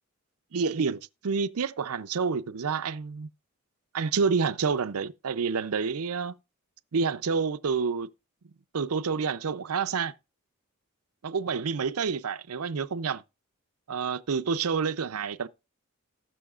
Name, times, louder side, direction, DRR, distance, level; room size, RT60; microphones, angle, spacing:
voice 1, 0.5-3.3 3.9-6.3 6.9-8.1 8.7-10.1 11.2-13.2 13.9-15.5, right 5 dB, 85° right, 0.6 m, -28 dB
18.5 x 6.2 x 2.4 m
head